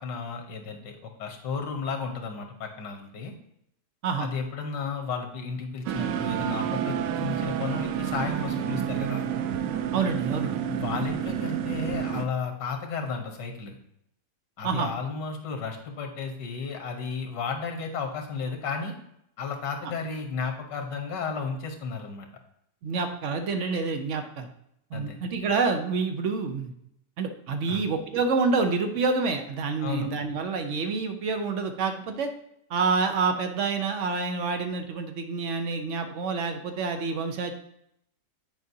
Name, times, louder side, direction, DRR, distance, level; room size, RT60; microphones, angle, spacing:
voice 1, 0.0-3.3 4.2-9.3 10.7-13.7 14.6-18.9 19.4-22.3 24.9-25.2 27.7-27.9 29.8-30.1, left 5 dB, 90° left, 4 dB, 1.7 m, -33 dB
sound 1, 5.9-12.3, right 9 dB, 85° right, 1.2 m, -29 dB
voice 2, 9.9-10.6 14.6-14.9 22.8-24.5 24.9-26.7 27.2-32.3 32.7-37.5, right 4 dB, 60° right, 6 dB, 0.8 m, -27 dB
9.4 x 4.8 x 2.7 m, 0.76 s
omnidirectional pair, 1.9 m